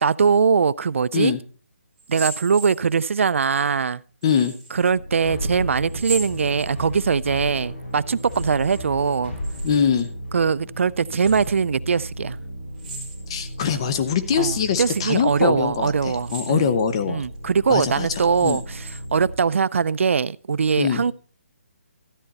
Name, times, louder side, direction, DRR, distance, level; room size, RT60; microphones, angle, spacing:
voice 1, 0.0-1.3 2.1-4.0 4.7-9.3 10.3-12.4 14.4-16.7 17.1-21.1, right 5 dB, 65° right, 0.4 m, -21 dB
sound 1, 2.0-3.2 4.2-4.8 5.9-7.1 8.1-8.8 9.1-10.1 11.0-11.6 12.8-13.5 14.1-14.2 14.8-15.2 16.1-16.9 17.3-17.4 18.1-19.1, right 4 dB, ahead, 3.2 m, -38 dB
voice 2, 4.2-4.5 9.6-10.1 13.3-17.2 17.7-18.1 18.4-18.6 20.8-21.0, left 7 dB, 25° left, 0.7 m, -22 dB
sound 2, 4.7-19.4, equal, 45° left, 5.9 m, -35 dB
13.0 x 8.8 x 4.1 m
hypercardioid pair, 175°, 7 cm